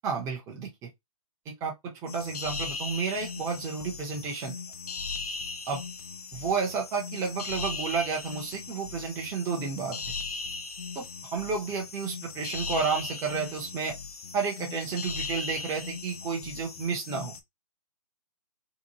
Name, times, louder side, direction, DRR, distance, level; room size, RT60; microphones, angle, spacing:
voice 1, 0.0-0.9 1.5-4.5 5.7-5.8 6.3-10.1 10.9-11.1 11.3-13.9 14.3-17.3, right 5 dB, 15° right, 0.6 m, -31 dB
sound 1, 2.1-17.4, left 4 dB, 80° left, 0.5 m, -38 dB
2.8 x 2.1 x 2.8 m
hypercardioid pair, 135°, 19 cm